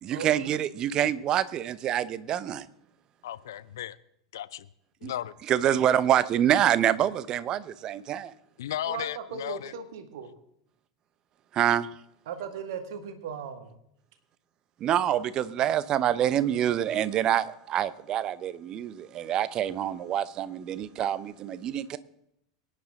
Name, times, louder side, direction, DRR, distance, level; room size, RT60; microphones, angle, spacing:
voice 1, 0.0-2.7 5.0-5.1 5.5-8.3 11.5-11.9 14.8-22.0, right 10 dB, 35° right, 0.8 m, -26 dB
voice 2, 3.2-4.0 4.3-4.7 5.0-5.3 8.6-9.7, left 12 dB, 65° left, 0.6 m, -35 dB
voice 3, 8.9-10.3 12.3-13.7, right 7 dB, 60° right, 1.8 m, -37 dB
23.5 x 10.0 x 3.7 m
figure-of-eight pair, 85°, 2 cm